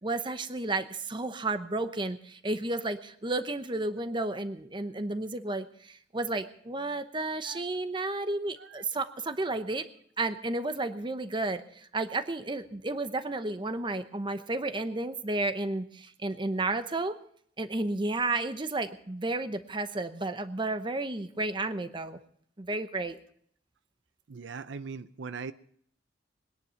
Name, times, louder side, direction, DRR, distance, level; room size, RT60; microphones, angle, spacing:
voice 1, 0.0-9.8 10.2-17.2 17.6-22.2 22.6-23.2, right 2 dB, 25° right, 10 dB, 0.9 m, -32 dB
voice 2, 24.3-25.5, right 5 dB, 80° right, 14 dB, 0.5 m, -40 dB
21.0 x 10.5 x 5.7 m, 0.63 s
head